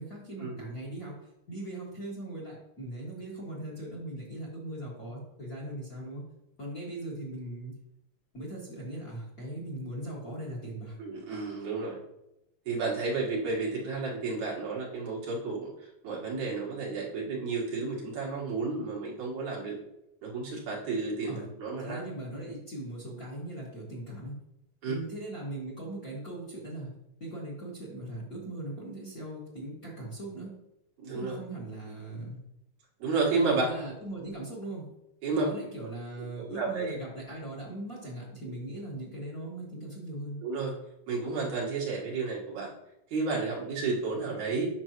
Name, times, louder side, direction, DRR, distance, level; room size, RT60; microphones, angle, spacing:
voice 1, 0.0-6.2 6.6-7.7 8.3-10.9 21.3-21.5 21.8-24.4 24.9-26.9 27.2-30.5 31.1-32.4 33.5-34.9 35.3-40.4, right 1 dB, 35° left, -4 dB, 1.7 m, -39 dB
voice 2, 11.0-12.0 12.7-15.7 16.0-19.8 20.2-22.0 24.8-25.0 31.0-31.3 33.0-33.6 35.2-35.5 36.5-37.0 40.4-40.7 41.1-42.7 43.1-44.7, right 4 dB, 70° right, -3 dB, 2.9 m, -31 dB
8.8 x 6.2 x 3.0 m, 0.86 s
omnidirectional pair, 3.5 m